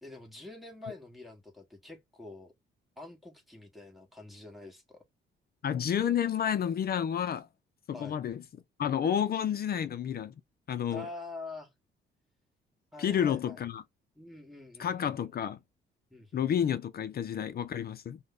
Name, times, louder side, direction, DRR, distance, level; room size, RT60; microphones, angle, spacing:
voice 1, 0.0-2.5 3.0-5.0 7.9-8.2 10.9-11.7 12.9-13.6 14.2-15.2 16.1-16.5, left 3 dB, ahead, 1.6 m, -46 dB
voice 2, 5.6-7.5 7.9-8.4 8.8-10.3 10.7-11.1 13.0-13.8 14.8-15.6 16.3-18.2, left 9 dB, 50° left, 0.6 m, -30 dB
5.1 x 2.3 x 3.9 m
cardioid pair, 90°, 20 cm